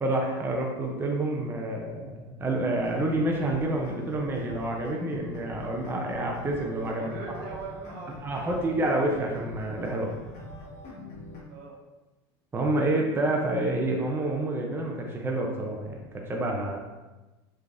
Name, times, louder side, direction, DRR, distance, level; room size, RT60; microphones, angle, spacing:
voice 1, 0.0-7.1 8.2-10.1 12.5-16.0 16.3-16.8, right 1 dB, 15° right, 0 dB, 0.5 m, -28 dB
sound 1, 2.7-11.4, left 1 dB, 55° left, 1.3 m, -43 dB
voice 2, 6.9-8.6 11.5-11.8, right 4 dB, 65° right, 0 dB, 0.8 m, -41 dB
3.3 x 3.3 x 2.5 m, 1.1 s
hypercardioid pair, 95°, 13 cm